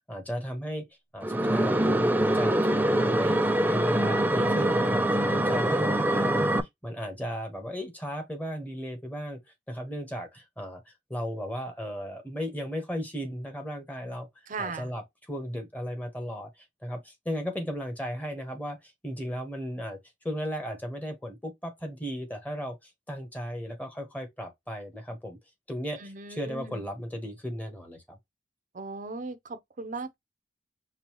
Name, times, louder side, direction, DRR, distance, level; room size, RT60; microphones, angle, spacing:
voice 1, 0.1-0.9 1.1-5.0 5.3-6.5 6.8-9.4 9.7-14.3 14.6-20.0 20.2-25.4 25.7-28.2, equal, 10° left, 1.2 m, -35 dB
sound 1, 1.2-6.6, right 1 dB, 10° right, 0.4 m, -24 dB
voice 2, 14.5-14.9 26.0-26.8 28.7-30.1, right 4 dB, 45° right, 0.7 m, -37 dB
5.3 x 2.3 x 3.0 m
head